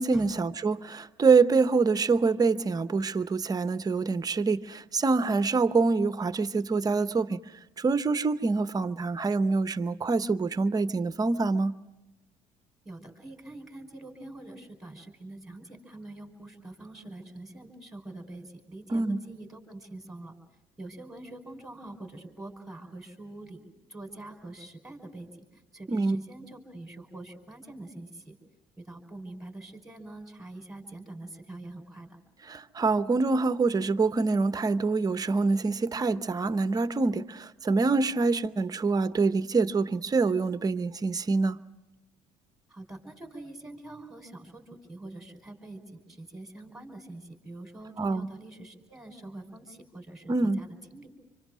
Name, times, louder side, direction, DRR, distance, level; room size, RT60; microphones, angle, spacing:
voice 1, 0.0-7.4 7.8-11.7 18.9-19.2 25.9-26.2 32.5-41.6 48.0-48.3 50.3-50.6, right 4 dB, 25° right, 0.8 m, -25 dB
voice 2, 12.8-20.3 20.8-28.4 28.8-32.2 42.7-51.1, right 2 dB, 5° right, 4.9 m, -45 dB
26.5 x 25.0 x 6.2 m
supercardioid pair, 90°, 14 cm